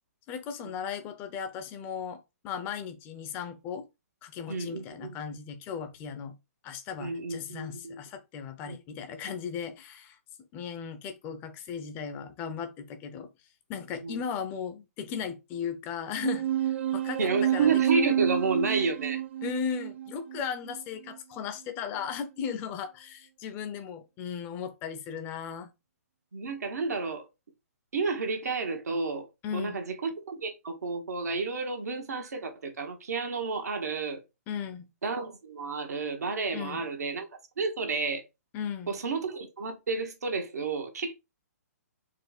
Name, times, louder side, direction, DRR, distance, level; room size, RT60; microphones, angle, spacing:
voice 1, 0.3-3.9 4.2-6.3 6.6-10.2 10.5-13.3 13.7-17.7 19.4-25.7 29.4-29.8 34.5-34.9 36.5-36.8 38.5-39.0, left 7 dB, 25° left, 0.6 m, -36 dB
voice 2, 4.5-5.2 7.0-8.0 8.7-8.8 14.0-14.2 17.2-19.2 26.3-27.3 27.9-29.3 29.5-34.2 35.0-37.3 37.6-38.2 38.9-41.1, right 4 dB, 80° right, 1.4 m, -31 dB
sound 1, 16.2-21.2, right 11 dB, 50° right, 0.5 m, -29 dB
4.5 x 2.3 x 4.0 m
hypercardioid pair, 145°, 9 cm